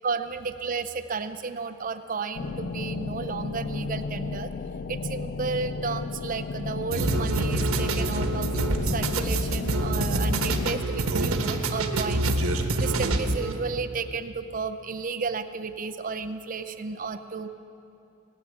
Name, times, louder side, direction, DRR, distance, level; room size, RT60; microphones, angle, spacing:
voice 1, 0.0-4.5 4.9-12.3 12.8-17.5, right 4 dB, 40° right, 8 dB, 0.6 m, -33 dB
sound 1, 2.4-10.8, left 4 dB, 50° left, 0.3 m, -33 dB
sound 2, 6.9-13.5, right 2 dB, 85° right, 1.1 m, -26 dB
19.0 x 7.2 x 9.6 m, 2.7 s
head